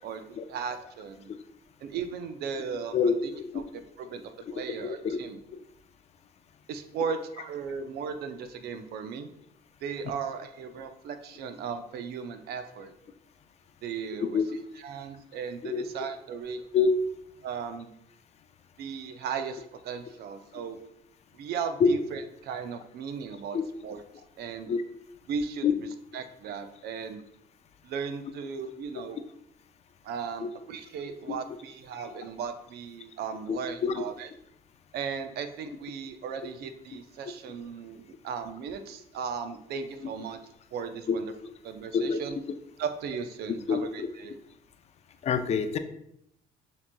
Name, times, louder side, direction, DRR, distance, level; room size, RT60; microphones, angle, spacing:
voice 1, 0.0-1.3 1.8-2.9 3.5-4.2 4.5-5.4 6.7-9.3 9.8-12.9 13.8-14.4 14.8-16.6 17.4-17.9 18.8-20.8 21.3-23.6 23.8-24.0 24.4-24.7 25.3-25.6 26.1-27.2 27.8-29.2 30.0-34.3 34.9-40.4 40.7-41.2 41.6-42.4 42.8-44.3, right 6 dB, 70° right, 8 dB, 0.5 m, -36 dB
voice 2, 2.9-3.6 4.8-5.2 5.5-5.6 14.3-14.6 15.6-15.8 16.7-16.9 21.8-21.9 23.5-23.6 24.7-24.8 25.6-25.7 30.4-30.5 31.3-31.4 33.5-34.0 40.0-40.1 41.1-41.2 41.4-41.5 41.9-42.2 43.7-44.1 45.2-45.8, left 6 dB, 40° left, 9 dB, 0.4 m, -26 dB
7.0 x 2.9 x 2.2 m, 0.74 s
cardioid pair, 110°, 17 cm